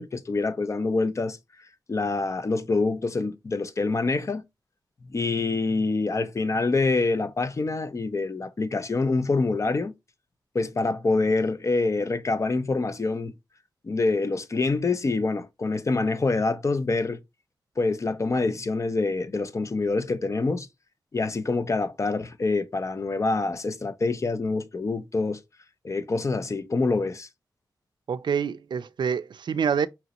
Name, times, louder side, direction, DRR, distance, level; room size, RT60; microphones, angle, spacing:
voice 1, 0.0-1.4 1.9-4.4 5.0-9.9 10.5-13.3 13.8-17.2 17.8-20.7 21.1-25.4 25.8-27.3, left 3 dB, 40° left, 0.5 m, -26 dB
voice 2, 28.1-29.9, right 7 dB, 75° right, 0.3 m, -26 dB
5.0 x 2.9 x 2.9 m
wide cardioid pair, 130°, 8 cm